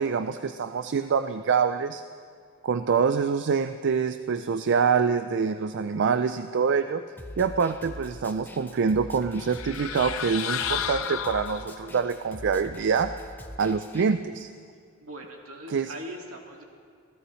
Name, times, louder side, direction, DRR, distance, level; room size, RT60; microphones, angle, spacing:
voice 1, 0.0-2.0 2.6-7.0 7.4-13.1 13.6-14.5 15.7-15.9, right 6 dB, 55° right, 10 dB, 0.4 m, -25 dB
Snare drum, 7.2-14.0, equal, 10° left, 0.8 m, -43 dB
sound 1, 9.4-12.0, left 8 dB, 70° left, 0.6 m, -32 dB
voice 2, 15.0-16.6, right 1 dB, 75° right, 1 dB, 2.1 m, -40 dB
26.0 x 16.0 x 3.2 m, 2.1 s
head